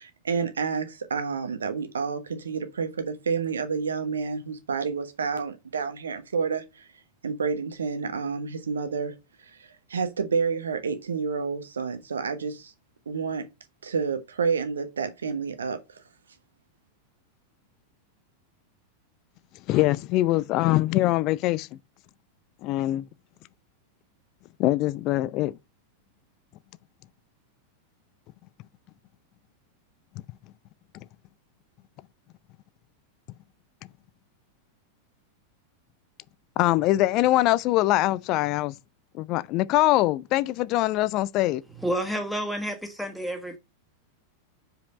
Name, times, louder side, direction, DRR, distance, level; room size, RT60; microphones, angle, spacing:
voice 1, 0.0-6.8 7.2-9.1 9.9-12.7 13.1-13.4 13.8-15.8, right 5 dB, 70° right, 1.2 m, -29 dB
voice 2, 19.7-21.7 22.6-23.1 24.6-25.6 36.6-38.8 39.1-41.6, left 16 dB, 40° left, 0.3 m, -23 dB
voice 3, 41.7-43.6, equal, ahead, 1.6 m, -30 dB
5.1 x 4.8 x 5.1 m
figure-of-eight pair, 90°, 0 cm